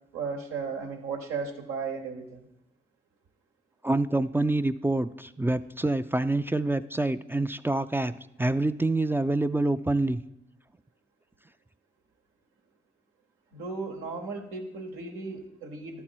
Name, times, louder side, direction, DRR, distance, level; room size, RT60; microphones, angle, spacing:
voice 1, 0.1-2.4 13.5-16.0, right 4 dB, 90° right, 2 dB, 1.0 m, -35 dB
voice 2, 3.8-8.1 8.4-10.2, right 2 dB, 10° right, 12 dB, 0.3 m, -26 dB
11.5 x 4.3 x 4.5 m, 0.80 s
supercardioid pair, 45°, 21 cm